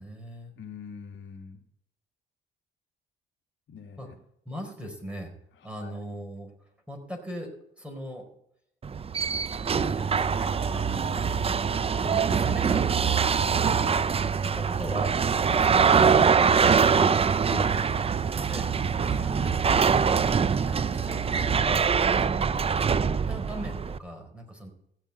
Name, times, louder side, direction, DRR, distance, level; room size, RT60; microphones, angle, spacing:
voice 1, 0.0-0.5 4.0-4.1 4.4-5.3 5.6-6.5 6.9-8.3 9.8-11.4 11.9-13.4 14.4-17.2 18.5-18.7 19.1-21.9 23.0-24.7, equal, 5° right, 2 dB, 4.3 m, -39 dB
voice 2, 0.6-1.6 3.7-4.1 5.8-6.0 11.1-11.2 13.7-14.1 17.4-17.8, left 6 dB, 70° left, 3 dB, 1.9 m, -42 dB
sound 1, 8.8-24.0, right 6 dB, 30° right, 0.5 m, -24 dB
15.5 x 6.1 x 8.0 m, 0.73 s
cardioid pair, 90°, 20 cm